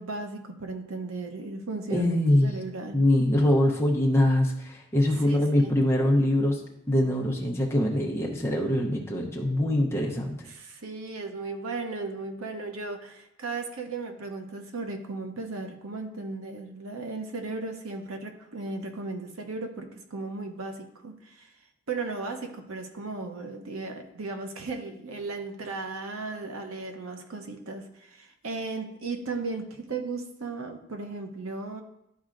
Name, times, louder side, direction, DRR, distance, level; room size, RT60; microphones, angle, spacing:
voice 1, 0.0-3.0 5.2-5.7 10.5-21.5 21.9-31.8, right 3 dB, 85° right, 5 dB, 0.8 m, -36 dB
voice 2, 1.9-2.5 2.9-6.6 6.9-10.3, left 1 dB, 10° left, -1 dB, 0.7 m, -23 dB
11.5 x 4.2 x 2.5 m, 0.81 s
head